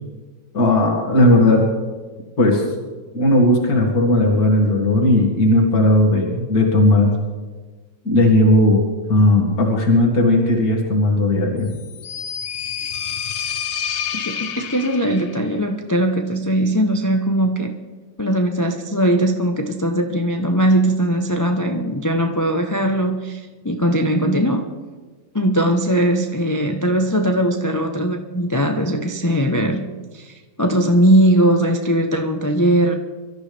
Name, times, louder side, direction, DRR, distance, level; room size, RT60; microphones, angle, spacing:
voice 1, 0.5-1.6 2.4-2.6 3.1-7.1 8.0-8.8 9.1-11.7, left 1 dB, 55° left, -1 dB, 2.7 m, -16 dB
sound 1, 11.6-15.4, left 8 dB, 85° left, 0.5 m, -28 dB
voice 2, 14.1-17.7 18.2-24.6 25.3-29.9 30.1-32.9, right 1 dB, 25° left, 4 dB, 0.4 m, -19 dB
25.0 x 13.0 x 3.4 m, 1.3 s
omnidirectional pair, 1.9 m